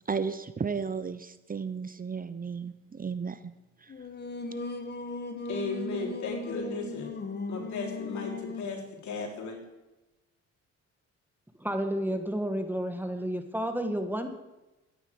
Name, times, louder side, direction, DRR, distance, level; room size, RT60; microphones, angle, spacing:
voice 1, 0.1-3.5 3.8-3.9, right 5 dB, 30° right, 13 dB, 0.8 m, -34 dB
Singing, 3.9-8.8, left 3 dB, 35° left, 1.8 m, -37 dB
voice 2, 5.5-7.1 7.5-9.6, left 4 dB, 70° left, 2 dB, 3.9 m, -35 dB
voice 3, 11.6-14.3, equal, 5° right, 7 dB, 1.7 m, -31 dB
13.0 x 10.0 x 7.9 m, 1.0 s
cardioid pair, 90°, 30 cm